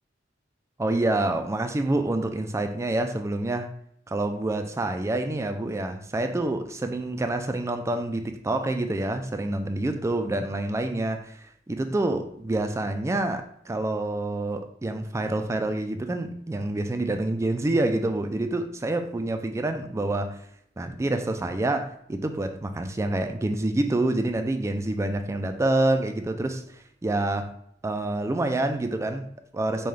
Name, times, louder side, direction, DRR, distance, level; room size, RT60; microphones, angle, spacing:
voice 1, 0.8-3.7 4.1-20.4 20.8-26.6 27.0-27.5 27.8-29.9, right 2 dB, 15° right, 0.3 m, -27 dB
5.5 x 2.3 x 3.2 m
head